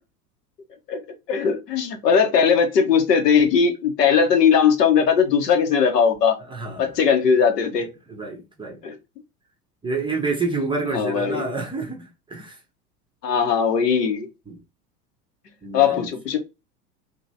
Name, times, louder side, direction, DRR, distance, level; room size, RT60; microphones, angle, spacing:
voice 1, 1.3-6.4 6.8-7.9 8.8-8.9 10.9-11.5 13.2-14.3 15.7-16.4, left 6 dB, 75° left, 1.0 m, -19 dB
voice 2, 6.5-7.0 7.8-8.8 9.8-12.6 14.5-14.6 15.6-16.1, right 3 dB, 10° right, 0.6 m, -29 dB
2.9 x 2.7 x 2.7 m
figure-of-eight pair, 80°, 49 cm